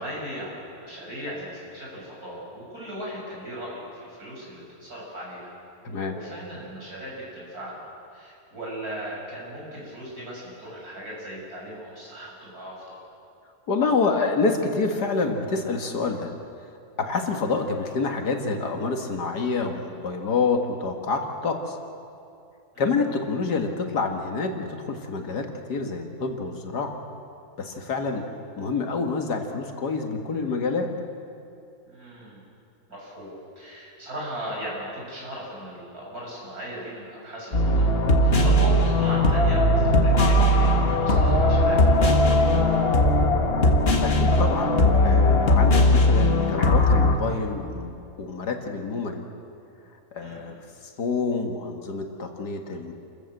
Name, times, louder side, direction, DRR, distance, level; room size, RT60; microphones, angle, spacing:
voice 1, 0.0-5.6 6.1-13.0 22.7-22.8 31.9-32.4 32.9-42.1 50.2-50.5, equal, 65° right, -4 dB, 6.9 m, -37 dB
voice 2, 13.7-16.3 17.0-21.8 22.8-27.0 27.6-28.2 28.6-30.9 44.0-44.8 45.0-49.2 50.1-50.6 51.0-52.9, left 4 dB, 85° left, 4 dB, 2.3 m, -27 dB
sound 1, 37.5-47.1, left 1 dB, 40° left, 1.7 m, -19 dB
29.0 x 14.0 x 7.8 m, 2.6 s
omnidirectional pair, 1.7 m